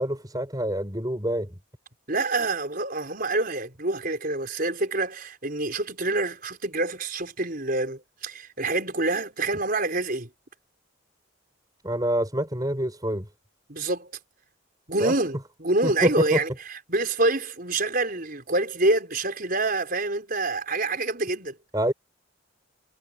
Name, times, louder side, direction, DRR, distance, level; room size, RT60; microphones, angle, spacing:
voice 1, 0.0-1.5 11.8-13.2 15.0-15.1 15.8-16.4 21.7-21.9, right 1 dB, 20° right, 6.5 m, -26 dB
voice 2, 2.1-10.3 13.7-14.1 14.9-16.5 16.9-21.6, right 2 dB, 45° right, 5.3 m, -26 dB
head